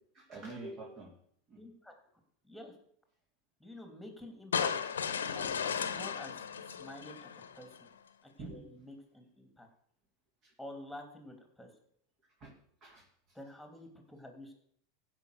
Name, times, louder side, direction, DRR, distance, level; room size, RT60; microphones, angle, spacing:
voice 1, 0.1-1.1 1.5-1.6 8.4-8.6 10.4-10.5 12.4-12.5 12.8-13.4, right 2 dB, 40° right, -2 dB, 3.3 m, -46 dB
voice 2, 1.6-1.9 2.4-2.7 3.6-5.1 5.3-7.9 8.2-9.7 10.6-11.7 13.3-14.5, left 1 dB, ahead, 4 dB, 2.8 m, -49 dB
sound 1, 4.5-7.8, left 7 dB, 90° left, 0.9 m, -35 dB
15.0 x 5.5 x 6.6 m, 0.65 s
hypercardioid pair, 95°, 0 cm